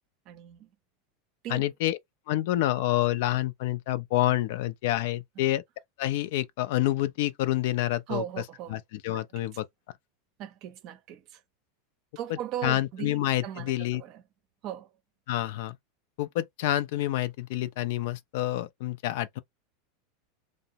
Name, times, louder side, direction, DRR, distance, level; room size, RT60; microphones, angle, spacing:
voice 1, 0.3-0.7 1.4-1.6 5.4-5.5 8.1-8.7 9.4-9.5 10.4-11.2 12.2-13.1 13.4-13.7 14.0-14.2 14.6-14.9, right 11 dB, 50° right, 0.6 m, -37 dB
voice 2, 1.5-2.0 2.3-5.6 6.0-8.4 8.7-9.6 12.3-14.0 15.3-15.8 16.2-19.4, left 14 dB, 65° left, 0.4 m, -28 dB
2.6 x 2.0 x 2.8 m
hypercardioid pair, 90°, 0 cm